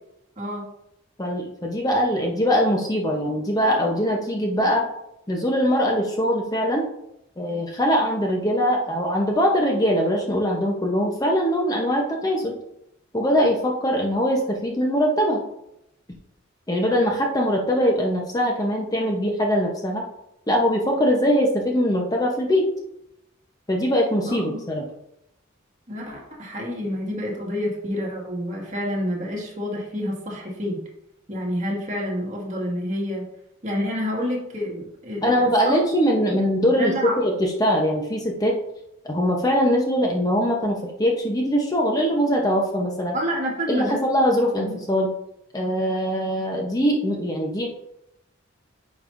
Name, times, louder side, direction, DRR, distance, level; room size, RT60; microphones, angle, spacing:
voice 1, 0.4-0.7 24.3-24.6 25.9-30.8 31.3-33.2 33.6-35.8 36.3-37.3 43.1-44.0 44.5-44.8, equal, 35° right, -2 dB, 1.8 m, -29 dB
voice 2, 1.2-4.8 5.3-6.8 7.4-12.5 13.1-15.4 16.7-20.0 20.5-22.6 23.7-24.8 35.2-38.6 39.0-43.2 43.7-45.1 45.5-47.7, equal, 20° left, 0 dB, 0.8 m, -22 dB
9.5 x 5.4 x 2.6 m, 0.82 s
head